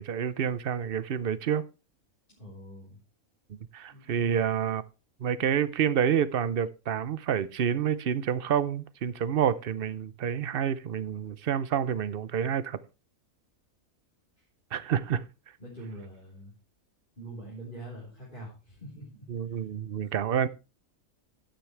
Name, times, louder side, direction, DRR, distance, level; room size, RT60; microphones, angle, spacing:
voice 1, 0.0-1.6 3.5-4.8 5.2-12.8 14.7-15.2 19.3-20.5, right 8 dB, 50° right, 0.8 m, -28 dB
voice 2, 2.3-3.0 3.9-4.4 15.6-16.5 17.2-19.6 19.9-20.1, right 1 dB, 35° left, 4.2 m, -45 dB
12.0 x 8.9 x 3.3 m
omnidirectional pair, 1.4 m